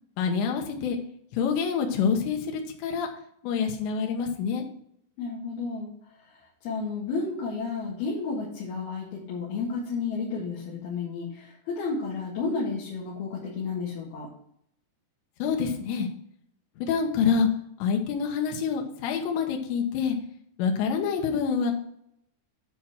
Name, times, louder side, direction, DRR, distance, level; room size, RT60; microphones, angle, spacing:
voice 1, 0.2-1.0 1.3-3.1 3.4-4.7 15.4-16.1 16.8-17.5 17.8-20.2 20.6-21.7, left 6 dB, 85° left, 2 dB, 3.3 m, -26 dB
voice 2, 5.2-5.9 6.3-14.3, left 4 dB, 65° left, -5 dB, 3.5 m, -32 dB
10.0 x 4.3 x 5.9 m, 0.70 s
omnidirectional pair, 5.0 m